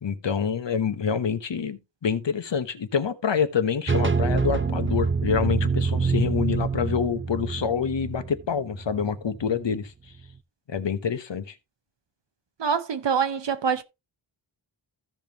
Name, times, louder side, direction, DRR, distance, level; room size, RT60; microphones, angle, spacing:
voice 1, 0.0-9.9 10.7-11.5, left 7 dB, 65° left, 1.1 m, -27 dB
sound 1, 3.9-9.6, right 5 dB, 25° right, 0.7 m, -26 dB
voice 2, 12.6-13.8, right 6 dB, 65° right, 0.8 m, -25 dB
15.5 x 5.3 x 2.9 m
wide cardioid pair, 110°, 47 cm